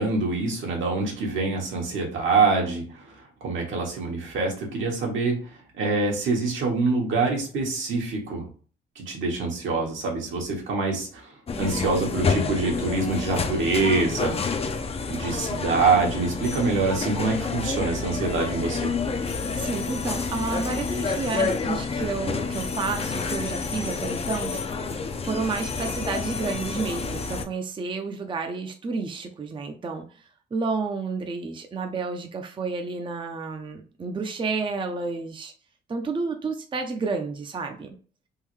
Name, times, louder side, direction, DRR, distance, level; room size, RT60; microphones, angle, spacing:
voice 1, 0.0-3.1 3.4-5.5 5.8-8.5 8.9-14.4 15.1-18.9, right 3 dB, 75° right, -1 dB, 1.4 m, -25 dB
sound 1, 11.5-27.5, left 4 dB, 30° left, 0.5 m, -29 dB
voice 2, 19.6-24.6 25.2-30.2 30.5-35.5 35.9-38.0, right 4 dB, 25° right, 4 dB, 0.5 m, -30 dB
3.6 x 2.6 x 3.1 m, 0.41 s
cardioid pair, 90°, 20 cm